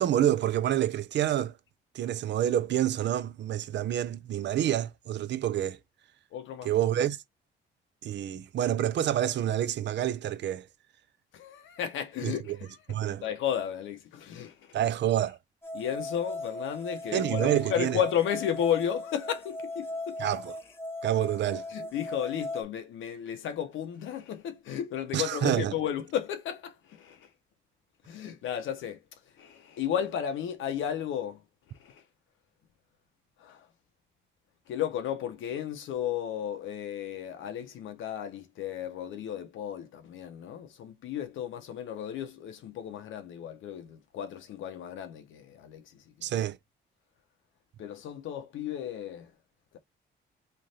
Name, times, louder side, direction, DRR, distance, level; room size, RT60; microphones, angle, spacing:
voice 1, 0.0-1.5 1.9-5.8 6.6-7.2 8.0-10.7 12.2-12.6 12.9-13.2 14.7-15.4 17.1-18.0 20.2-20.5 21.0-21.6 25.1-25.7 46.2-46.6, right 11 dB, 65° right, 0.6 m, -28 dB
voice 2, 6.3-6.7 11.3-12.8 13.2-14.8 15.7-20.3 21.7-27.3 28.1-29.0 29.4-31.4 31.8-32.0 33.4-33.7 34.7-46.3 47.8-49.3, left 9 dB, 75° left, 0.7 m, -34 dB
sound 1, 15.6-22.6, left 1 dB, 10° left, 1.1 m, -38 dB
3.2 x 2.5 x 4.0 m
cardioid pair, 90°, 20 cm